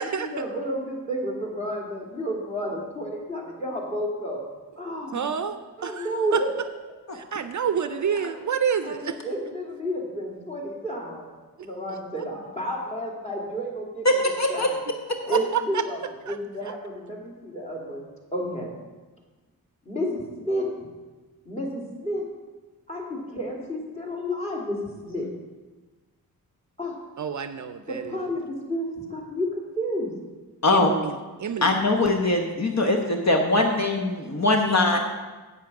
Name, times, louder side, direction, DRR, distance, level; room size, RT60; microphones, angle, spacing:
voice 1, 0.0-4.4 4.8-5.3 5.8-6.5 7.8-8.3 8.8-11.3 11.6-14.1 14.5-14.8 15.3-16.0 16.3-18.0 18.3-18.7 19.8-20.7 21.4-22.3 22.9-24.8 25.1-25.3 26.8-27.0 27.9-30.1, equal, 20° left, -2 dB, 2.5 m, -31 dB
voice 2, 5.1-5.6 5.8-6.1 7.1-9.2 15.5-15.6 16.3-16.4 27.2-28.1 30.7-31.1 31.4-31.8, right 7 dB, 55° right, 10 dB, 0.5 m, -28 dB
voice 3, 14.0-14.7 15.2-15.4 30.6-30.9 31.6-35.0, left 2 dB, 45° left, 3 dB, 1.0 m, -22 dB
8.3 x 7.4 x 5.8 m, 1.3 s
wide cardioid pair, 90°, 37 cm